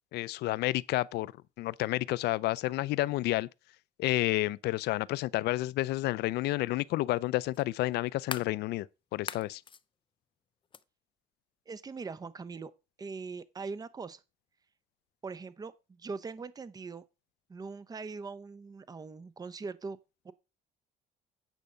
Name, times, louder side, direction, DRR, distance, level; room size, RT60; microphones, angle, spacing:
voice 1, 0.1-1.3 1.6-3.5 4.0-8.9 9.1-9.6, left 17 dB, 75° left, 0.5 m, -30 dB
sound 1, 5.6-5.7 7.5-8.6 9.1-9.8 10.7-10.8, left 7 dB, 30° left, 0.6 m, -40 dB
voice 2, 11.7-12.7 13.0-14.2 15.2-17.0 17.5-20.0 20.2-20.3, right 4 dB, 20° right, 0.7 m, -41 dB
9.1 x 4.9 x 6.6 m
cardioid pair, 110°, 17 cm